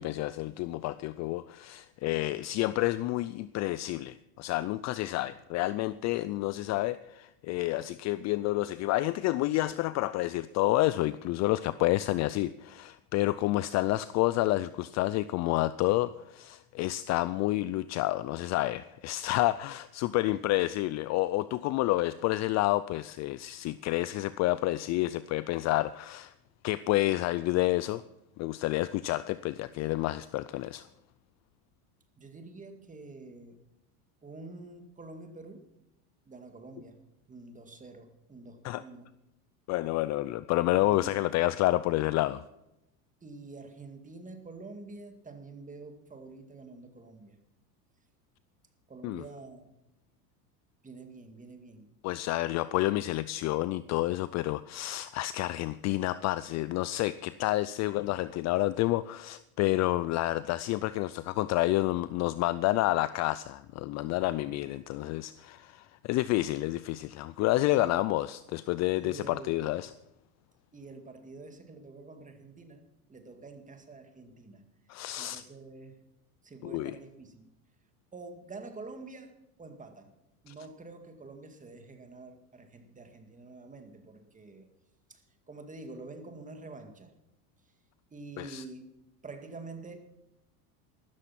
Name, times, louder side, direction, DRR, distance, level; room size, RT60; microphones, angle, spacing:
voice 1, 0.0-26.3 26.6-28.0 28.4-30.9 38.6-38.8 39.7-42.4 49.0-49.2 52.0-69.9 74.9-75.4 76.6-77.0 80.5-80.6 88.4-88.6, left 17 dB, 40° left, 0.4 m, -29 dB
voice 2, 32.2-33.6 34.2-35.7 36.3-37.0 37.3-39.1 40.7-41.3 43.2-47.4 48.9-49.7 50.8-51.9 67.7-68.0 68.9-69.7 70.7-72.8 73.1-74.7 75.2-76.0 76.4-77.5 78.1-79.3 79.6-80.2 80.4-84.7 85.1-87.1 88.1-88.9 89.2-90.0, right 3 dB, 15° right, 2.1 m, -47 dB
13.5 x 13.5 x 5.9 m
supercardioid pair, 115°, 46 cm